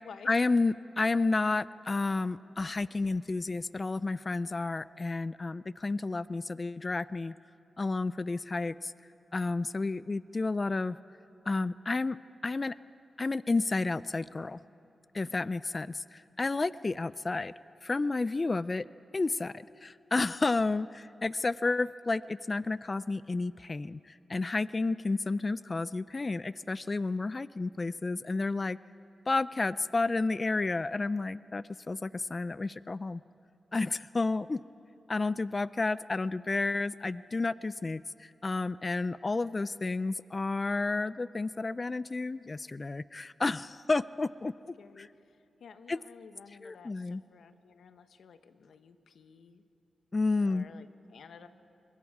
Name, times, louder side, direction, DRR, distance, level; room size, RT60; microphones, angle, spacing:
voice 1, 0.3-7.3 7.8-8.9 9.3-11.0 11.5-12.2 12.4-12.8 13.2-14.6 15.1-17.5 17.8-18.9 19.1-28.8 29.3-33.2 33.7-34.6 35.1-45.1 45.9-46.0 46.6-47.2 50.1-50.7, left 3 dB, 40° left, 17 dB, 0.4 m, -31 dB
voice 2, 44.4-49.6 50.4-51.5, left 6 dB, 80° left, 10 dB, 1.0 m, -53 dB
25.0 x 21.5 x 4.9 m, 2.7 s
cardioid pair, 50°, 0 cm